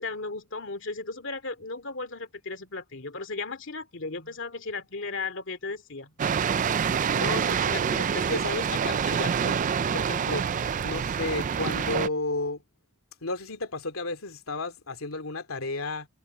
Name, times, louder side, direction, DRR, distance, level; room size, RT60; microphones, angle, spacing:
voice 1, 0.0-6.1, left 3 dB, 60° left, 2.4 m, -35 dB
sound 1, 6.2-12.1, right 7 dB, 35° right, 0.3 m, -26 dB
voice 2, 7.1-9.6 9.9-10.5 10.8-12.6 13.2-16.1, left 3 dB, 80° left, 2.7 m, -33 dB
head